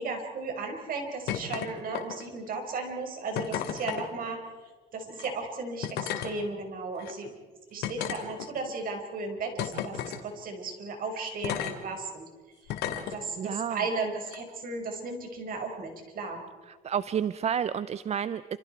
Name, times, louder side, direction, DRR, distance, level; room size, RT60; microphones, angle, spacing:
voice 1, 0.0-4.4 4.9-7.3 7.7-12.3 12.9-16.4, right 3 dB, 55° right, 4 dB, 5.4 m, -35 dB
sound 1, 1.3-1.7 1.9-2.4 3.3-4.0 5.1-5.3 5.8-6.3 7.0-7.1 7.8-8.7 9.6-10.2 11.4-11.7 12.7-13.1 14.2-14.4, left 10 dB, 85° left, 2.6 m, -33 dB
voice 2, 13.4-13.8 16.7-18.6, right 8 dB, 40° right, 15 dB, 0.6 m, -30 dB
28.5 x 27.5 x 4.6 m, 1.4 s
cardioid pair, 110°, 17 cm